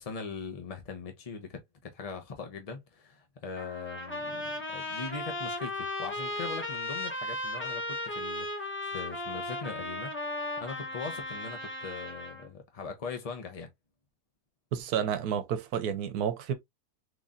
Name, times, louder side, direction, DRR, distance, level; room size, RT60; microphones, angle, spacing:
voice 1, 0.0-1.6 1.9-10.1 10.6-13.7, left 5 dB, 60° left, 0.3 m, -41 dB
Trumpet, 3.6-12.5, left 1 dB, 10° left, 0.8 m, -36 dB
voice 2, 14.7-16.5, right 8 dB, 75° right, 1.1 m, -30 dB
3.8 x 3.1 x 2.4 m
omnidirectional pair, 1.7 m